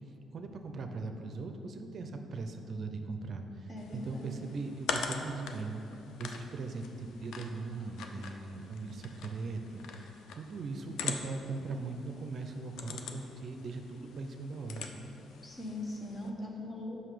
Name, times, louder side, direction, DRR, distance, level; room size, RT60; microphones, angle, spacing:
voice 1, 0.3-15.1, right 3 dB, 55° right, 6 dB, 0.5 m, -40 dB
voice 2, 3.7-4.4 15.4-17.0, left 1 dB, 30° left, 0 dB, 1.2 m, -40 dB
sound 1, 3.8-16.3, left 5 dB, 80° left, 0.5 m, -43 dB
5.8 x 5.5 x 4.9 m, 2.8 s
cardioid pair, 90°, 0 cm